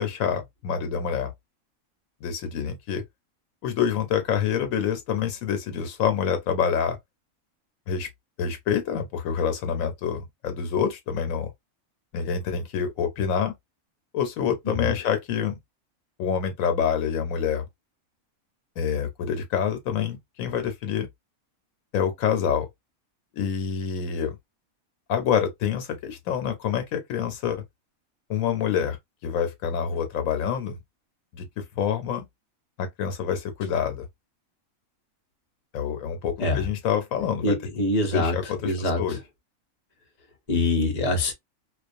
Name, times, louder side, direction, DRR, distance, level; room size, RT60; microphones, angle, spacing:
voice 1, 0.0-1.3 2.2-3.0 3.6-7.0 7.9-8.1 8.4-11.5 12.1-13.5 14.1-15.6 16.2-17.6 18.8-21.1 21.9-22.7 23.3-24.4 25.1-27.6 28.3-29.0 29.2-30.8 31.3-32.2 32.8-34.1 35.7-37.6 38.1-39.2, left 7 dB, 75° left, 1.0 m, -27 dB
voice 2, 37.4-39.2 40.5-41.3, left 2 dB, 35° left, 0.7 m, -25 dB
2.4 x 2.2 x 2.5 m
omnidirectional pair, 1.4 m